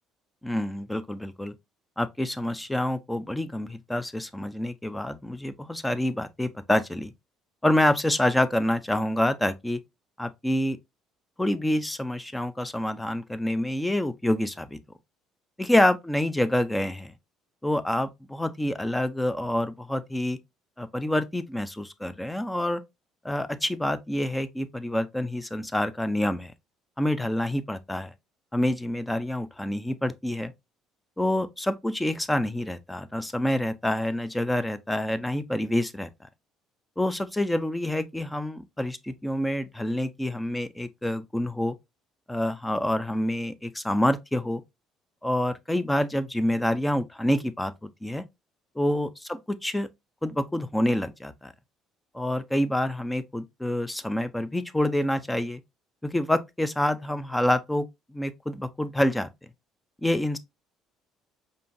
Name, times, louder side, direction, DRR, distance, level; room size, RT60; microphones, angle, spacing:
voice 1, 0.4-1.5 2.0-7.1 7.6-9.8 10.2-10.8 11.4-14.8 15.6-17.1 17.6-20.4 20.8-22.8 23.2-26.5 27.0-28.1 28.5-30.5 31.2-36.1 37.0-41.8 42.3-44.6 45.2-47.7 48.0-48.2 48.8-49.9 50.2-51.5 52.1-55.6 56.0-57.9 58.1-59.3 60.0-60.4, left 1 dB, 5° left, 0.4 m, -27 dB
5.3 x 2.5 x 2.5 m
cardioid pair, 150°, 0 cm